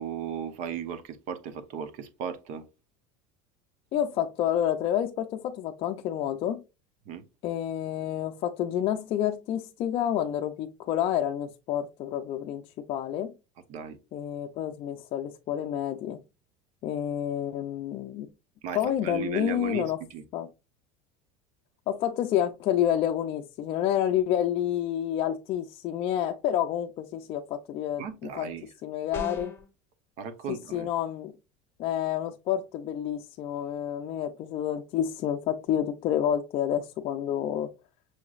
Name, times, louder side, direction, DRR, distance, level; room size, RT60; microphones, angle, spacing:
voice 1, 0.0-2.7 7.1-7.2 13.7-14.0 18.6-19.8 20.1-20.2 28.0-28.7 30.2-30.9, right 7 dB, 55° right, 0.9 m, -36 dB
voice 2, 3.9-6.6 7.4-13.3 14.1-16.2 16.8-18.3 18.7-20.0 20.3-20.5 21.9-28.5 28.8-29.5 30.5-31.4 31.8-37.7, left 10 dB, 40° left, 0.4 m, -29 dB
sound 1, 29.1-29.7, left 4 dB, 15° left, 0.9 m, -37 dB
6.3 x 3.0 x 2.4 m
cardioid pair, 150°, 15 cm